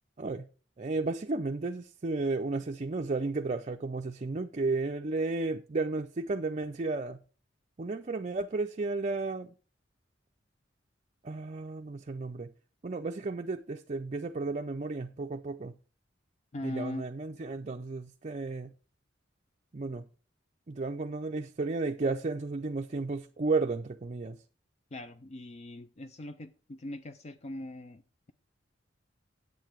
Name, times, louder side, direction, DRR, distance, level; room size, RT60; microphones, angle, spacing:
voice 1, 0.8-7.2 7.8-9.5 11.2-12.5 12.8-15.7 16.6-18.7 19.7-20.1 20.7-24.4, right 3 dB, 40° right, 0.5 m, -33 dB
voice 2, 16.5-17.0 24.9-28.0, left 1 dB, 35° left, 0.5 m, -40 dB
8.8 x 8.2 x 4.6 m
head